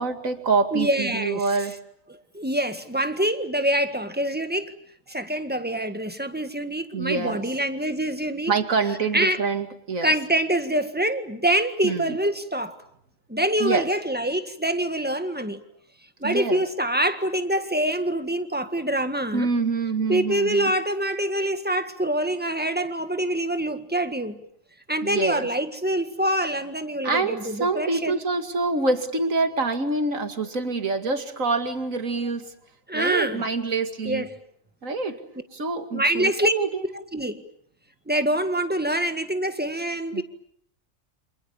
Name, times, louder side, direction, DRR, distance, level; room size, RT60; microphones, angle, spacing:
voice 1, 0.0-1.7 6.9-7.4 8.5-10.1 11.8-12.2 13.6-13.9 16.2-16.6 19.3-20.7 25.0-25.5 27.0-32.5 32.9-34.2 34.8-35.2 35.5-36.8 40.1-40.2, right 4 dB, 85° right, 7 dB, 2.6 m, -26 dB
voice 2, 0.7-1.5 2.1-4.7 5.1-8.5 9.1-9.4 10.0-12.8 13.3-15.6 16.2-19.5 20.1-24.4 24.9-28.2 32.9-33.4 34.1-34.3 35.9-36.5 37.1-37.4 38.1-40.2, right 1 dB, 5° right, 8 dB, 1.7 m, -25 dB
28.5 x 27.0 x 7.1 m, 0.68 s
omnidirectional pair, 1.4 m